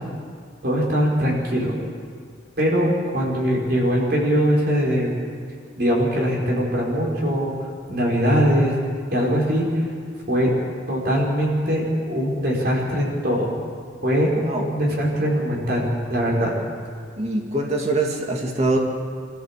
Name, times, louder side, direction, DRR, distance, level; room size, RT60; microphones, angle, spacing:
voice 1, 0.6-1.7 2.6-5.1 5.8-8.8 9.1-9.9 10.3-10.5 10.9-13.5 14.0-16.5, equal, 55° right, -3 dB, 5.3 m, -21 dB
voice 2, 14.3-14.7 17.2-18.8, right 2 dB, 35° right, 0 dB, 2.4 m, -23 dB
25.5 x 15.0 x 7.6 m, 2.1 s
head